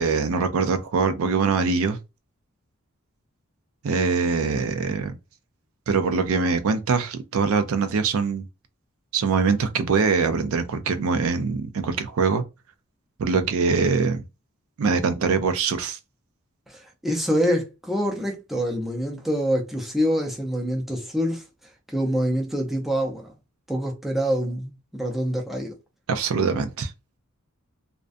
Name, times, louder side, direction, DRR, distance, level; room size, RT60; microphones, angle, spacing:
voice 1, 0.0-2.0 3.8-5.1 5.9-8.4 9.1-12.4 13.2-14.2 14.8-16.0 26.1-26.9, right 5 dB, 75° right, 0.4 m, -23 dB
voice 2, 16.7-21.4 21.9-23.3 23.7-25.7, equal, ahead, 0.5 m, -26 dB
2.4 x 2.1 x 2.5 m
head